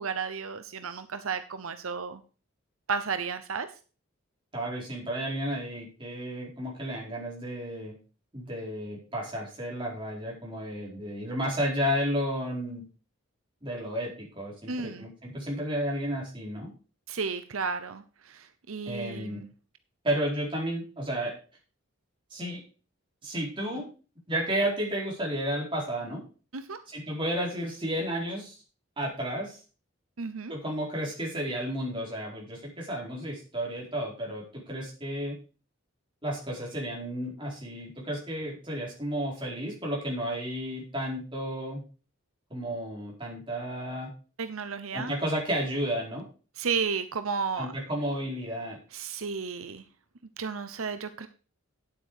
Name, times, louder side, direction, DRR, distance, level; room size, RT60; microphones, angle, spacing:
voice 1, 0.0-2.2 2.9-3.7 14.7-15.1 17.1-19.5 26.5-26.8 30.2-30.5 44.4-45.1 46.6-47.7 48.9-49.8 50.4-51.3, right 5 dB, 80° right, 10 dB, 0.8 m, -33 dB
voice 2, 4.5-7.9 8.3-12.8 13.6-16.7 18.9-19.4 20.0-21.3 22.3-22.6 23.2-23.8 24.3-26.2 26.9-28.6 29.0-29.6 30.5-34.4 34.7-35.4 36.2-41.8 42.5-44.1 44.9-46.2 47.6-48.8, equal, 25° right, -3 dB, 4.3 m, -32 dB
9.2 x 8.3 x 4.8 m, 0.37 s
head